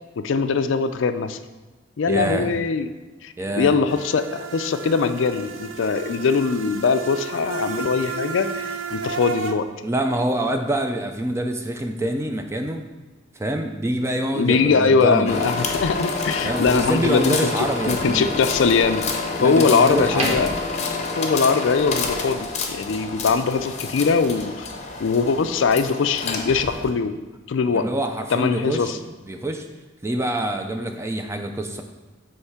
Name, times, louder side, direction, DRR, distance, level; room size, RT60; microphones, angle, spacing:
voice 1, 0.2-1.4 2.0-2.9 3.2-9.7 14.3-19.1 19.4-20.5 21.2-24.7 25.0-27.1 27.5-27.9 28.3-29.0, left 5 dB, 65° left, 10 dB, 0.4 m, -21 dB
voice 2, 2.1-2.5 3.4-3.8 9.8-12.8 13.4-15.5 16.4-18.4 19.4-20.5 27.7-29.7 30.0-31.8, right 1 dB, 15° right, 5 dB, 0.4 m, -26 dB
sound 1, 3.9-9.5, right 5 dB, 70° right, 0.5 m, -33 dB
sound 2, 15.2-26.9, left 4 dB, 35° left, 0.7 m, -28 dB
sound 3, 20.0-21.9 22.2-22.4, right 1 dB, 30° right, 1.0 m, -34 dB
7.9 x 3.2 x 5.7 m, 1.2 s
head